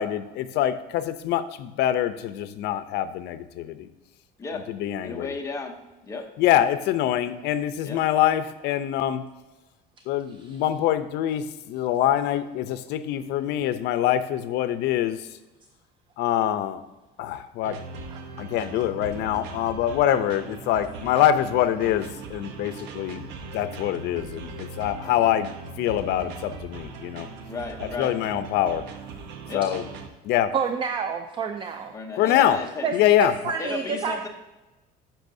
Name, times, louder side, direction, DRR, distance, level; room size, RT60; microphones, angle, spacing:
voice 1, 0.0-3.9 4.7-5.3 6.4-9.2 10.1-15.2 16.2-16.8 17.2-17.8 18.4-25.5 25.8-27.3 27.8-28.8 29.5-29.9 30.2-30.5 32.2-32.6 32.9-33.3, left 11 dB, 75° left, 12 dB, 0.5 m, -24 dB
voice 2, 5.0-5.8 6.0-6.3 7.8-8.0 27.5-28.2 29.5-29.7 31.9-32.9 33.6-34.3, left 4 dB, 15° left, 3 dB, 0.7 m, -33 dB
voice 3, 10.3-10.6 18.1-18.2 22.8-22.9 30.5-31.9 32.8-34.2, right 6 dB, 30° right, 6 dB, 0.4 m, -29 dB
sound 1, 17.6-30.1, right 4 dB, 80° right, 0.8 m, -39 dB
10.0 x 6.2 x 2.7 m, 1.1 s
cardioid pair, 165°, 18 cm